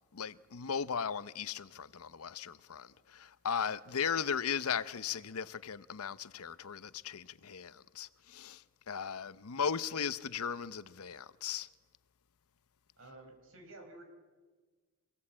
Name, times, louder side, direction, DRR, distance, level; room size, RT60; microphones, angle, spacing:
voice 1, 0.1-11.7, left 7 dB, 80° left, 0.7 m, -37 dB
voice 2, 13.0-14.0, right 2 dB, 65° right, 4.8 m, -52 dB
27.0 x 17.0 x 8.7 m
head